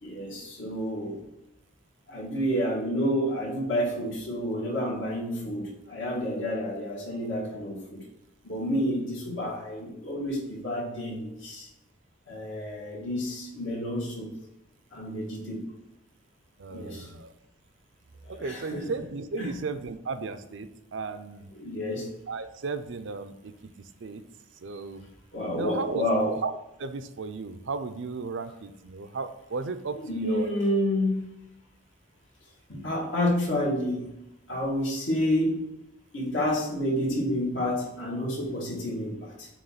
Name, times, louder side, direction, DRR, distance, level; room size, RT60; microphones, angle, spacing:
voice 1, 0.0-1.2 2.1-8.0 8.4-11.7 12.3-14.3 14.9-15.7 16.7-17.1 18.3-18.8 19.4-19.5 21.5-22.1 25.3-26.3 30.0-31.3 32.7-34.1 34.5-35.6 36.1-39.5, equal, 70° left, -4 dB, 2.6 m, -29 dB
voice 2, 16.6-17.3 18.3-21.5 22.3-24.2 24.6-25.1 25.5-26.5 26.8-30.5, right 4 dB, 65° right, 10 dB, 0.5 m, -35 dB
7.7 x 3.1 x 5.8 m, 0.86 s
head